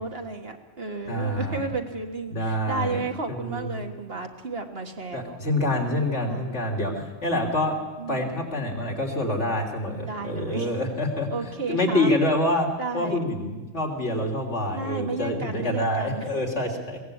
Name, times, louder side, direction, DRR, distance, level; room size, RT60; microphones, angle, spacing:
voice 1, 0.0-5.4 6.2-6.7 8.0-8.5 10.0-10.7 11.3-12.1 12.8-13.2 14.7-16.3, right 4 dB, 50° right, 4 dB, 1.9 m, -33 dB
voice 2, 1.1-1.7 2.3-3.0 3.3-3.8 5.1-7.8 8.1-12.7 12.9-17.0, left 1 dB, 65° left, 1 dB, 3.6 m, -26 dB
22.0 x 17.5 x 8.5 m, 1.2 s
omnidirectional pair, 1.3 m